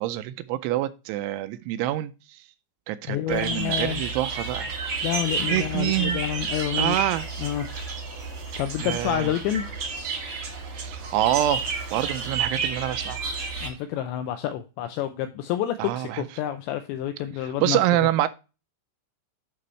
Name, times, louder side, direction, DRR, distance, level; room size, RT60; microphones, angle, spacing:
voice 1, 0.0-2.4 2.9-4.7 5.5-6.2 6.8-7.3 8.8-9.3 10.7-11.6 11.9-13.2 15.8-16.2 17.6-18.3, right 14 dB, 85° right, 2.9 m, -26 dB
voice 2, 3.1-4.0 5.0-7.0 7.4-7.7 8.6-9.7 13.6-17.8, left 12 dB, 85° left, 2.5 m, -28 dB
sound 1, 3.3-13.7, right 4 dB, 45° right, 1.8 m, -31 dB
9.2 x 6.2 x 3.1 m
omnidirectional pair, 5.7 m